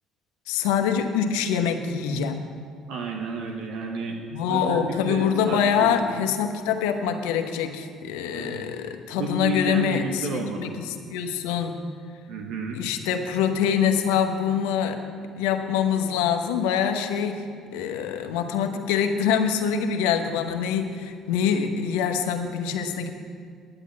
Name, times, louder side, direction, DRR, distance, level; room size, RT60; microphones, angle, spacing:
voice 1, 0.5-2.4 4.3-11.8 12.7-15.0 15.4-17.4 17.7-23.1, left 7 dB, 85° left, 5 dB, 1.1 m, -25 dB
voice 2, 2.9-4.2 4.5-5.9 8.3-8.7 9.1-10.7 12.3-12.8, right 4 dB, 75° right, 2 dB, 1.1 m, -31 dB
11.0 x 8.2 x 8.6 m, 2.1 s
supercardioid pair, 65°, 0 cm